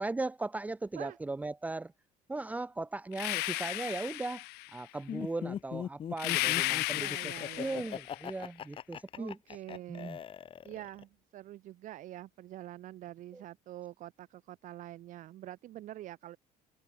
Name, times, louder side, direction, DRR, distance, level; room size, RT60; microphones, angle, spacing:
voice 1, 0.0-1.9 2.3-4.4 4.7-7.2 7.6-9.4 9.9-10.2 13.3-13.4, right 2 dB, 10° right, 1.3 m, -37 dB
sound 1, 3.1-4.8 6.2-8.2, left 23 dB, 80° left, 1.7 m, -34 dB
Laughter, 5.1-11.0, left 8 dB, 35° left, 6.9 m, -40 dB
voice 2, 6.9-7.9 9.2-10.1 10.6-16.4, right 14 dB, 55° right, 4.9 m, -46 dB
cardioid pair, 165°, 16 cm